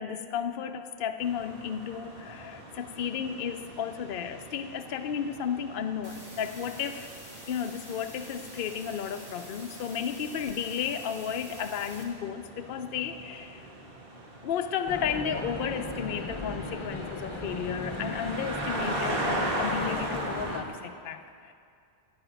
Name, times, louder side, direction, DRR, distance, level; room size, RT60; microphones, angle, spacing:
voice 1, 0.0-7.1 7.5-13.6 14.4-21.5, left 8 dB, 60° left, 7 dB, 0.7 m, -33 dB
sound 1, 1.2-20.6, right 2 dB, 60° right, 1.7 m, -39 dB
sound 2, 6.0-12.0, equal, 15° right, 2.4 m, -48 dB
sound 3, 14.9-20.6, left 2 dB, 30° left, 0.9 m, -37 dB
14.0 x 5.8 x 9.1 m, 2.3 s
omnidirectional pair, 1.1 m